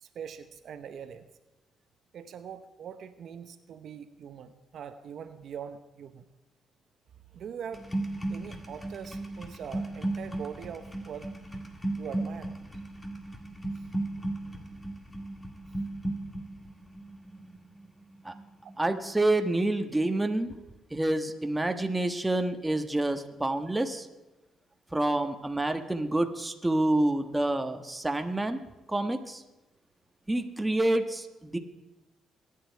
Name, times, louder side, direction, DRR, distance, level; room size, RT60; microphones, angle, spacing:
voice 1, 0.0-1.3 2.1-6.2 7.3-7.8 8.3-11.3 12.0-12.5 13.8-13.9, right 7 dB, 65° right, 9 dB, 0.9 m, -42 dB
sound 1, 7.7-19.6 19.8-20.3, right 2 dB, 15° left, 2.0 m, -36 dB
voice 2, 18.8-20.5 20.9-24.1 24.9-28.6 28.9-29.4 30.3-31.6, right 1 dB, 10° right, 6 dB, 1.3 m, -28 dB
23.5 x 9.6 x 4.6 m, 1.1 s
cardioid pair, 90°, 0 cm